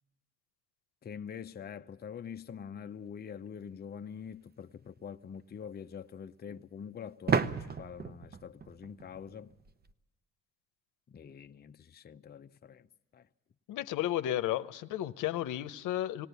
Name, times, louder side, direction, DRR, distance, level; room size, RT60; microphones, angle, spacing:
voice 1, 1.0-9.5 11.1-12.9 13.1-13.3, left 7 dB, 30° left, 0.6 m, -45 dB
sound 1, 4.3-4.4 7.3-9.9, right 5 dB, 30° right, 0.8 m, -33 dB
voice 2, 13.7-16.3, left 12 dB, 85° left, 0.7 m, -33 dB
19.5 x 17.5 x 8.1 m
cardioid pair, 90°, 30 cm